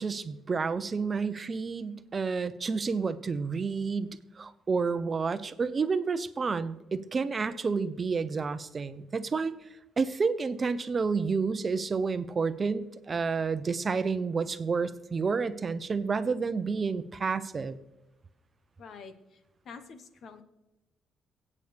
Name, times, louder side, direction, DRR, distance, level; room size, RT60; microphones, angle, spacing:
voice 1, 0.0-9.5 10.0-17.8, right 5 dB, 35° right, 12 dB, 0.7 m, -30 dB
voice 2, 18.8-19.4 19.6-20.4, left 5 dB, 65° left, 9 dB, 1.2 m, -47 dB
23.5 x 8.5 x 3.4 m, 0.99 s
cardioid pair, 90°, 0 cm